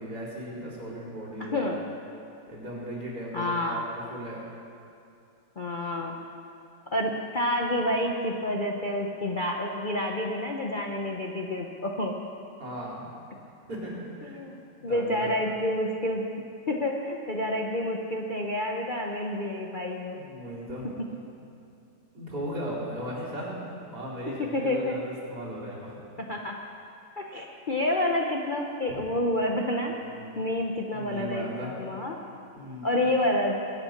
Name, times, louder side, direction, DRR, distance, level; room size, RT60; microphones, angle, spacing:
voice 1, 0.0-1.7 2.5-4.4 12.6-13.1 13.7-14.4 14.8-15.3 20.1-20.9 22.1-26.0 28.9-29.0 30.0-30.5 30.9-31.7 32.5-33.0, equal, 65° right, -6 dB, 4.7 m, -37 dB
voice 2, 1.4-1.8 3.3-3.8 5.6-6.2 6.9-12.1 14.2-14.6 14.8-16.2 16.7-20.2 24.4-25.0 26.2-26.6 27.2-29.9 30.4-32.2 32.8-33.6, left 1 dB, 40° left, 0 dB, 0.8 m, -29 dB
21.5 x 8.7 x 5.8 m, 2.6 s
omnidirectional pair, 1.9 m